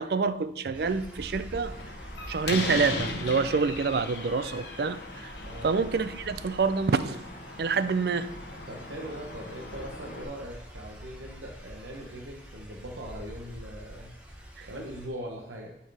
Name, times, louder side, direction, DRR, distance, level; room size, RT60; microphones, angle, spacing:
voice 1, 0.0-1.8 2.3-5.3 5.6-7.2 7.6-8.3 14.6-14.7, right 4 dB, 60° right, 0.4 m, -27 dB
sound 1, 0.7-15.1, equal, 5° right, 1.1 m, -46 dB
Slam, 1.6-10.2, left 3 dB, 60° left, 1.0 m, -38 dB
voice 2, 8.7-14.2 14.7-15.8, equal, 90° right, 1.0 m, -40 dB
12.0 x 4.6 x 3.4 m
head